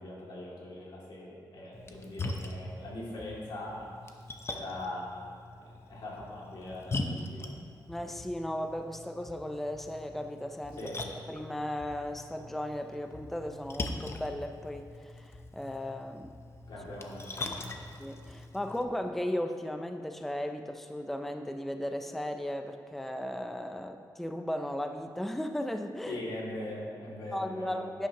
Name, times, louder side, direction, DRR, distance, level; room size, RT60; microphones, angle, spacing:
voice 1, 0.0-3.9 4.5-7.5 10.8-11.1 16.7-17.8 26.1-27.9, left 1 dB, 85° left, -4 dB, 2.4 m, -41 dB
Splash splatter, 1.7-18.8, left 2 dB, 35° left, 0.7 m, -42 dB
voice 2, 7.9-10.9 11.3-16.3 18.0-26.2 27.3-28.1, left 1 dB, 5° left, 6 dB, 0.5 m, -36 dB
11.0 x 10.0 x 2.9 m, 2.2 s
wide cardioid pair, 115°, 8 cm